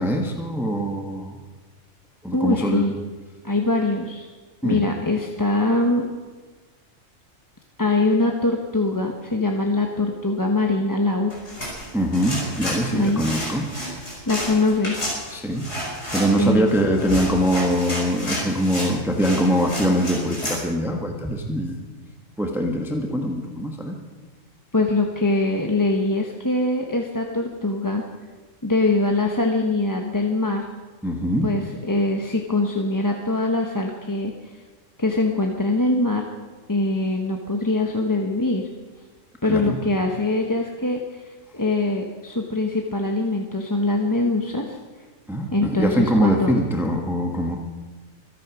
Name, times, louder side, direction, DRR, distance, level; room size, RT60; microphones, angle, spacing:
voice 1, 0.0-1.4 2.2-2.9 4.6-4.8 11.9-13.7 15.3-15.7 16.1-21.8 22.4-24.0 31.0-31.5 39.4-39.8 45.3-47.6, equal, ahead, 2 dB, 1.3 m, -23 dB
voice 2, 2.3-2.9 3.4-4.3 4.6-6.0 7.8-11.3 12.9-13.2 14.2-15.1 16.4-16.7 24.7-28.0 28.6-30.6 31.4-34.6 35.0-36.3 36.7-38.7 39.4-44.8 45.5-46.5, left 2 dB, 15° left, 2 dB, 1.0 m, -23 dB
sound 1, 11.3-20.6, equal, 55° left, 5.1 m, -31 dB
25.0 x 8.9 x 6.1 m, 1.3 s
omnidirectional pair, 1.4 m